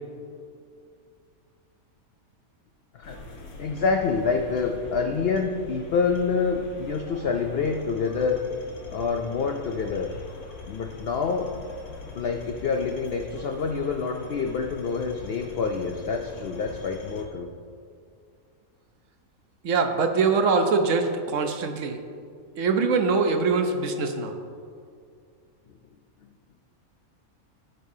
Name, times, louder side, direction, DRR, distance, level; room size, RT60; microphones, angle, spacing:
sound 1, 3.0-17.2, left 3 dB, 85° left, 1.6 m, -43 dB
voice 1, 3.6-8.4 8.9-10.1 10.7-11.5 12.1-17.5, left 5 dB, 60° left, 4 dB, 0.6 m, -27 dB
voice 2, 19.6-22.0 22.6-24.3, right 4 dB, 65° right, 5 dB, 1.1 m, -23 dB
15.5 x 6.7 x 2.7 m, 2.2 s
omnidirectional pair, 1.5 m